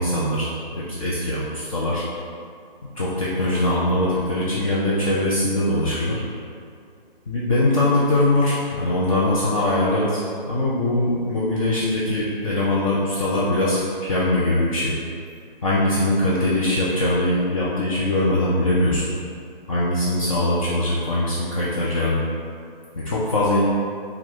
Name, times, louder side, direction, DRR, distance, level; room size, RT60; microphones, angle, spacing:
voice 1, 0.0-2.0 3.0-6.2 7.3-14.9 15.6-19.0 19.7-22.2 22.9-23.7, left 1 dB, 35° left, -7 dB, 0.5 m, -22 dB
4.7 x 2.3 x 3.7 m, 2.3 s
figure-of-eight pair, 150°, 29 cm